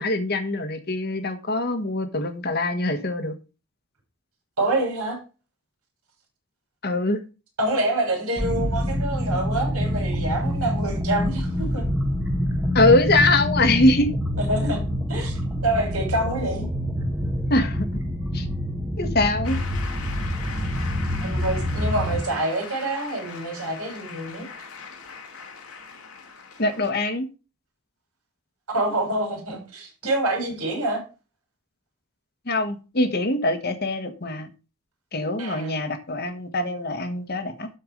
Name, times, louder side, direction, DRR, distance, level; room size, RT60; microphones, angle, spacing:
voice 1, 0.0-3.3 6.8-7.2 12.7-14.1 17.5-17.9 18.3-18.4 19.0-19.6 26.6-27.3 32.5-34.5 35.1-37.7, left 2 dB, 45° left, 1.3 m, -23 dB
voice 2, 4.6-5.2 7.6-11.9 14.4-14.8 15.1-16.7 21.2-24.4 28.7-31.0 35.4-35.8, right 2 dB, 75° right, 6.2 m, -26 dB
sound 1, 8.4-22.2, equal, 10° right, 1.2 m, -26 dB
Shout / Cheering / Applause, 19.4-26.9, left 5 dB, 75° left, 1.8 m, -40 dB
12.5 x 4.6 x 5.1 m
head